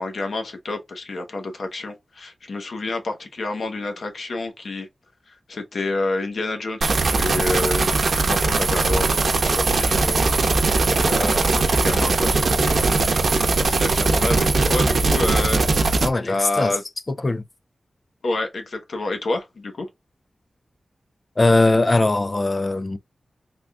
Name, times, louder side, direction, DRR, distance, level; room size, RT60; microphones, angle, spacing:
voice 1, 0.0-4.9 5.5-15.6 16.3-16.8 18.2-19.9, left 2 dB, 65° left, 1.0 m, -29 dB
sound 1, 6.8-16.1, right 3 dB, 65° right, 0.8 m, -20 dB
voice 2, 16.0-16.8 17.1-17.4 21.4-23.0, left 2 dB, 30° left, 0.3 m, -20 dB
3.5 x 2.3 x 3.4 m
wide cardioid pair, 105°, 0 cm